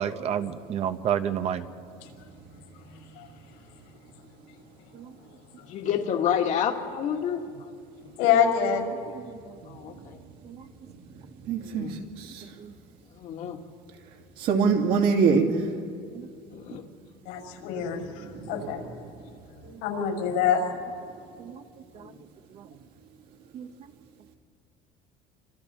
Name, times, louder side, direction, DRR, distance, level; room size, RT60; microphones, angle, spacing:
voice 1, 0.0-1.6 4.9-5.1 9.1-9.2 10.4-10.6 12.6-12.7 16.1-16.3 19.7-19.8 21.4-21.6 22.0-22.1 23.5-23.7, right 9 dB, 40° right, 10 dB, 0.8 m, -30 dB
voice 2, 5.7-7.7 9.7-10.2 11.6-12.0 13.1-13.6 16.5-16.8 17.7-17.9 22.0-22.1, left 8 dB, 50° left, 4 dB, 1.9 m, -29 dB
voice 3, 8.2-8.8 17.3-18.8 19.8-20.6, left 8 dB, 85° left, 2 dB, 6.1 m, -25 dB
voice 4, 11.5-11.9 12.2-12.4 14.4-15.7 18.1-18.8, right 5 dB, 65° right, 1 dB, 2.7 m, -24 dB
29.0 x 25.5 x 4.3 m, 2.3 s
cardioid pair, 140°, 16 cm